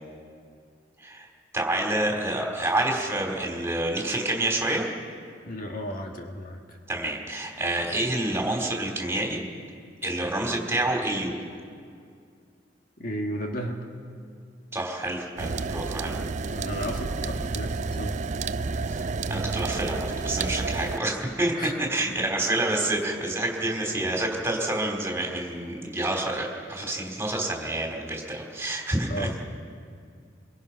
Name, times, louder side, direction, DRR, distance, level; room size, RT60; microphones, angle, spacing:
voice 1, 1.5-4.9 6.9-9.4 10.0-11.4 14.7-16.2 18.9-29.3, right 1 dB, 15° right, 0 dB, 3.7 m, -28 dB
voice 2, 5.5-6.8 13.0-13.9 16.5-18.2 21.6-21.8 29.0-29.4, equal, 50° left, 2 dB, 1.8 m, -34 dB
sound 1, 15.4-21.0, right 4 dB, 40° right, 0.5 m, -30 dB
25.0 x 24.0 x 5.7 m, 2.3 s
head